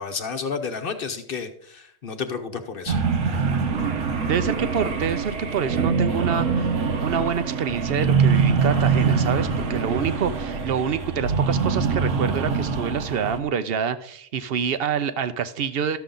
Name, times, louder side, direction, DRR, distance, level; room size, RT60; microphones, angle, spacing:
voice 1, 0.0-3.0, left 5 dB, 50° left, 7 dB, 1.0 m, -31 dB
sound 1, 2.9-13.4, right 5 dB, 75° right, 1.3 m, -24 dB
voice 2, 4.2-6.5 7.0-16.0, right 7 dB, 60° right, 12 dB, 0.7 m, -26 dB
12.5 x 7.0 x 3.8 m, 0.67 s
omnidirectional pair, 1.4 m